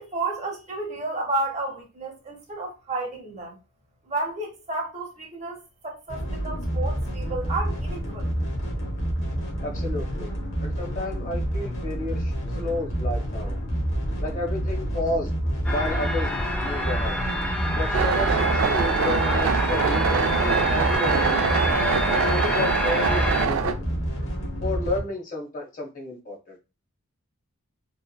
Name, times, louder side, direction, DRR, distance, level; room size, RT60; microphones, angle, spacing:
voice 1, 0.0-3.6 4.1-8.3, right 2 dB, 30° right, 0.7 m, -31 dB
sound 1, 6.1-25.0, equal, 65° left, 0.9 m, -28 dB
voice 2, 9.6-10.3 10.6-13.6 14.2-15.3 15.7-17.2 17.7-21.6 22.1-23.8 24.6-26.6, left 2 dB, 35° left, 0.7 m, -31 dB
sound 2, 15.6-23.5, left 1 dB, 5° left, 0.4 m, -28 dB
sound 3, 17.9-23.7, right 7 dB, 75° right, 0.3 m, -24 dB
2.9 x 2.4 x 2.2 m
head